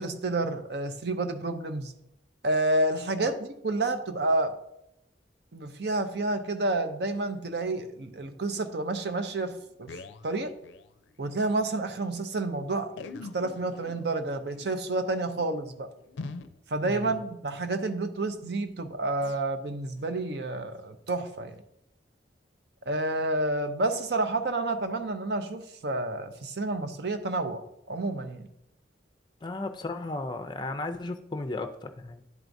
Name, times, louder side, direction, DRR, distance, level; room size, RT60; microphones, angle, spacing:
voice 1, 0.0-1.9 2.4-4.5 5.5-9.9 10.2-10.5 11.2-12.9 13.3-15.9 16.7-21.6 22.9-28.5, right 2 dB, 65° right, 8 dB, 0.6 m, -29 dB
sound 1, 9.5-11.6 11.9-12.0 12.1-12.3 12.9-18.0 18.4-18.7 19.2-19.4 19.9-20.2 20.7-20.8 21.5-21.6, left 3 dB, 85° left, 0.4 m, -46 dB
voice 2, 16.8-17.2 29.4-32.2, left 2 dB, 25° left, 8 dB, 0.5 m, -35 dB
11.0 x 4.6 x 2.6 m, 0.80 s
head